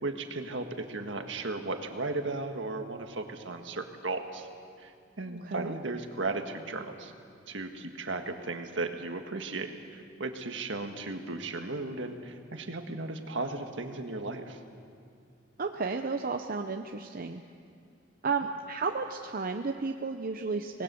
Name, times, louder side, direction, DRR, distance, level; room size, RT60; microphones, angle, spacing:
voice 1, 0.0-4.5 4.8-4.9 5.2-7.1 7.5-14.6, right 3 dB, 70° right, 5 dB, 1.7 m, -35 dB
voice 2, 5.3-5.8 15.6-17.4 18.2-20.8, right 4 dB, 50° right, 5 dB, 0.7 m, -33 dB
25.5 x 19.5 x 7.0 m, 2.4 s
head